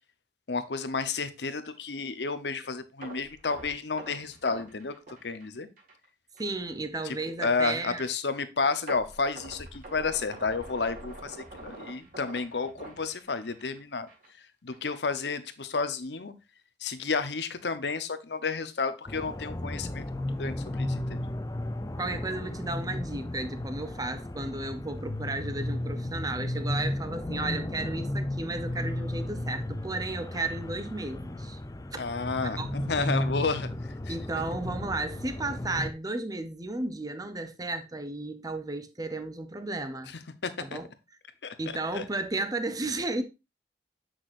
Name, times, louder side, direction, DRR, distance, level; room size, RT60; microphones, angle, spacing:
voice 1, 0.5-5.7 7.0-14.1 14.6-16.3 16.8-20.0 20.4-21.0 32.0-34.1 40.4-40.8 41.4-41.6 41.9-42.0, left 4 dB, 70° left, 0.9 m, -31 dB
sound 1, 3.0-6.1 6.4-6.5 7.0-7.1 8.9-13.8 14.1-14.3 14.7-14.8, right 2 dB, 50° right, 2.2 m, -45 dB
voice 2, 6.4-8.1 22.0-31.6 31.9-32.1 32.4-32.7 34.1-40.1 40.6-40.9 41.6-43.2, right 2 dB, 20° right, 0.8 m, -34 dB
sound 2, 19.1-35.9, left 1 dB, 20° left, 0.5 m, -34 dB
8.1 x 6.2 x 2.5 m
head